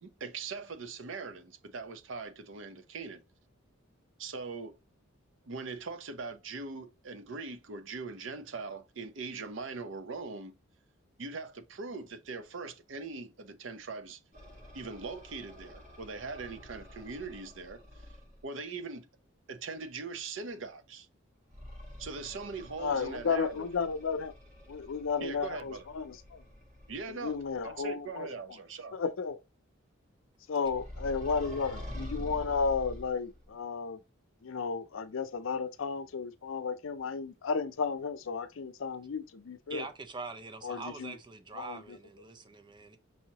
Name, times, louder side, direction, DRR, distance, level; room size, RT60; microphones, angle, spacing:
voice 1, 0.0-3.2 4.2-4.7 5.5-10.5 11.2-14.2 14.7-18.1 18.4-19.1 19.5-21.1 22.0-23.7 25.2-25.8 26.9-27.4 27.6-29.0, right 4 dB, 65° right, 0.6 m, -41 dB
sound 1, 14.3-18.4 21.5-27.8 30.6-33.5, left 1 dB, 40° right, 1.6 m, -47 dB
voice 2, 22.8-24.3 24.7-26.4 27.2-28.3 28.9-29.4 30.5-34.0 34.4-39.9 40.6-41.2 41.5-42.0, left 5 dB, 75° left, 0.5 m, -33 dB
voice 3, 39.7-43.0, right 4 dB, 25° right, 0.5 m, -43 dB
5.5 x 2.8 x 2.8 m
head